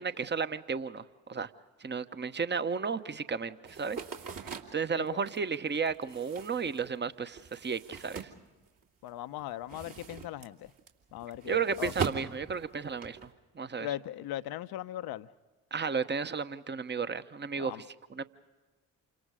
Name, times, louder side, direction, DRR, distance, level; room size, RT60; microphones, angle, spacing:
voice 1, 0.0-1.5 1.8-4.0 4.7-8.3 11.5-13.3 13.5-13.9 15.7-17.7 18.1-18.2, right 5 dB, 25° right, 1.1 m, -33 dB
sound 1, 3.6-9.1 9.4-13.3, right 6 dB, 55° right, 2.9 m, -41 dB
voice 2, 9.0-10.7 11.1-11.9 13.8-15.3 17.5-17.8, left 13 dB, 65° left, 0.9 m, -39 dB
28.5 x 25.5 x 5.0 m
hypercardioid pair, 45°, 40 cm